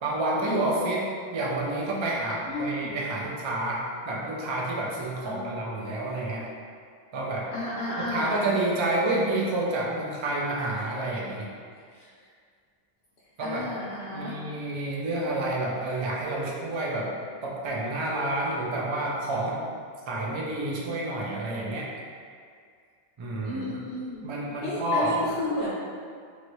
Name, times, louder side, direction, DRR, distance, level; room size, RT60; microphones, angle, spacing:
voice 1, 0.0-1.1 1.3-6.5 7.1-7.5 8.0-11.5 13.4-13.6 14.1-17.1 17.4-19.6 20.1-21.9 23.2-23.8 24.2-25.2, right 2 dB, 45° right, -3 dB, 0.4 m, -29 dB
voice 2, 2.5-2.9 5.2-5.5 7.5-8.3 13.4-14.3 23.4-24.2 24.6-25.7, left 1 dB, 70° left, -9 dB, 0.9 m, -32 dB
3.1 x 2.6 x 3.0 m, 2.1 s
omnidirectional pair, 1.0 m